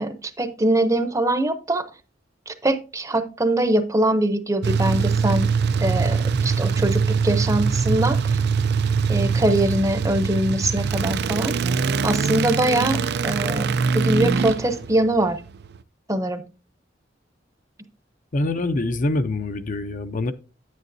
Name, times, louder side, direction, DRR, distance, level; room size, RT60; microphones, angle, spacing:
voice 1, 0.0-1.8 2.5-5.5 5.8-8.2 9.1-11.6 12.0-15.4 16.1-16.4, right 1 dB, 20° right, 0.7 m, -23 dB
sound 1, 4.6-15.8, right 5 dB, 60° right, 0.4 m, -23 dB
voice 2, 18.3-20.3, left 2 dB, 45° left, 0.6 m, -25 dB
9.3 x 9.3 x 2.7 m
head